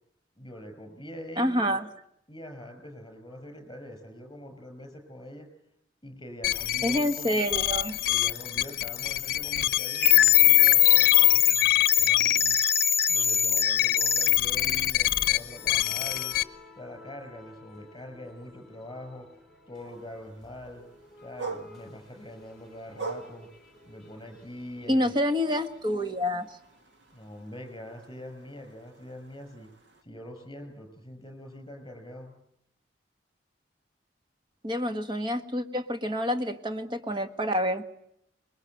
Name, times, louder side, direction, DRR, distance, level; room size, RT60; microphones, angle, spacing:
voice 1, 0.4-1.8 2.3-5.5 6.0-7.4 8.1-12.6 13.1-16.4 16.7-19.3 19.7-20.9 21.2-23.5 23.9-25.2 27.1-29.7 30.0-32.3, left 1 dB, 25° left, 6 dB, 6.2 m, -44 dB
voice 2, 1.4-1.9 6.8-8.0 24.9-26.6 34.6-37.8, equal, 25° right, 7 dB, 1.6 m, -27 dB
sound 1, 6.4-16.4, left 13 dB, 55° left, 0.9 m, -22 dB
sound 2, 15.1-27.0, left 2 dB, ahead, 4.8 m, -53 dB
sound 3, 19.8-30.0, right 4 dB, 80° right, 2.2 m, -45 dB
25.5 x 21.5 x 7.9 m, 0.76 s
head